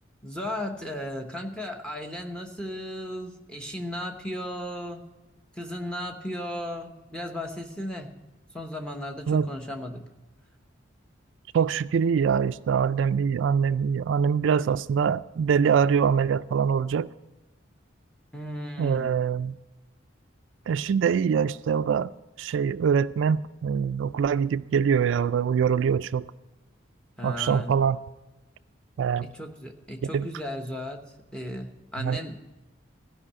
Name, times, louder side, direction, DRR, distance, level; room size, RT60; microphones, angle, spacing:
voice 1, 0.2-5.0 5.5-8.1 8.5-10.1 18.3-19.1 27.2-27.8 29.3-31.0 31.3-32.4, left 1 dB, 5° left, 1.0 m, -35 dB
voice 2, 11.5-17.1 18.8-19.6 20.7-22.1 22.4-26.3 27.2-28.0 29.0-29.3 30.1-30.3 32.0-32.2, right 7 dB, 75° right, 0.3 m, -24 dB
15.0 x 5.5 x 9.8 m
head